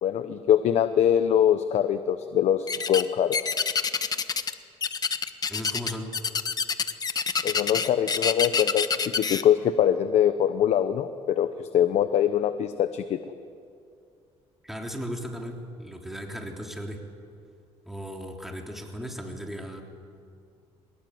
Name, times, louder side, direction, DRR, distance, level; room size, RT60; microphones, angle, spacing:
voice 1, 0.0-3.4 7.4-13.2, left 10 dB, 65° left, 10 dB, 1.0 m, -23 dB
sound 1, 2.7-3.1 3.3-4.5 4.8-9.4, left 5 dB, 35° left, 1.2 m, -27 dB
voice 2, 5.5-6.1 14.6-17.0 17.8-19.8, equal, ahead, 1 dB, 3.4 m, -36 dB
23.0 x 20.5 x 9.5 m, 2.4 s
cardioid pair, 105°, 12 cm